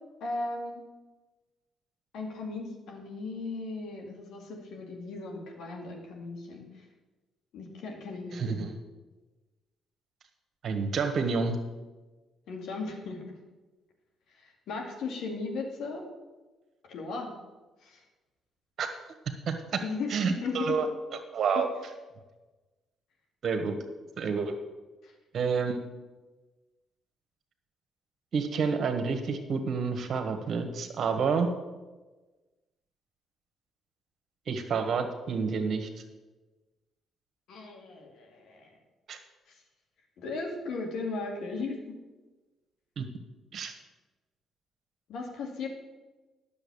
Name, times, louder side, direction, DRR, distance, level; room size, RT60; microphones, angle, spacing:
voice 1, 0.2-0.8 2.1-6.8 7.5-8.7 12.5-13.2 14.4-16.0 16.9-17.3 17.8-18.0 19.8-20.1 20.4-20.8 21.5-21.6 23.7-23.9 25.0-25.1 37.5-38.7 39.5-39.6 40.2-41.9 45.1-45.7, left 3 dB, 70° left, 1 dB, 2.3 m, -37 dB
voice 2, 8.3-8.7 10.6-11.6 18.8-18.9 19.5-19.8 20.1-20.9 21.3-21.7 23.4-23.8 24.2-24.5 25.3-25.8 28.3-31.5 34.5-35.9 39.1-39.2 43.0-43.1 43.5-43.7, right 5 dB, 60° right, 6 dB, 1.5 m, -29 dB
10.0 x 7.1 x 7.2 m, 1.2 s
hypercardioid pair, 50°, 0 cm